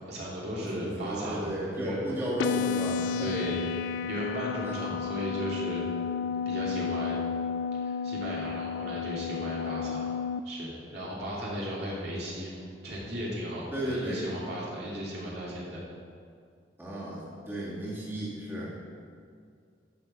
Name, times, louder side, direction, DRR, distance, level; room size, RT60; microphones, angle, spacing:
voice 1, 0.0-1.4 1.7-2.1 3.2-5.9 6.5-7.2 7.8-10.1 10.4-15.8, equal, 60° right, -6 dB, 2.7 m, -36 dB
voice 2, 0.6-3.3 4.6-5.0 11.8-11.9 13.7-14.2 16.8-18.8, right 1 dB, 15° right, -8 dB, 2.1 m, -34 dB
sound 1, 2.4-10.4, left 6 dB, 80° left, 0.3 m, -32 dB
11.5 x 6.8 x 5.4 m, 2.2 s
head